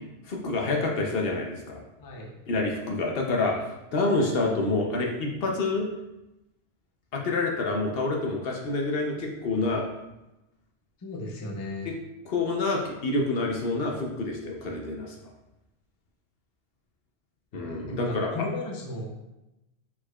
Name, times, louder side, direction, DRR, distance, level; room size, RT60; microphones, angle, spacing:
voice 1, 0.2-1.8 2.5-3.6 3.9-5.9 7.1-9.8 11.9-12.0 12.3-15.3 17.5-18.3, left 3 dB, 65° left, 0 dB, 0.8 m, -27 dB
voice 2, 2.0-2.3 3.5-3.6 11.0-11.9 17.5-19.1, left 1 dB, 25° left, -1 dB, 0.5 m, -35 dB
4.6 x 4.2 x 2.3 m, 0.96 s
omnidirectional pair, 1.1 m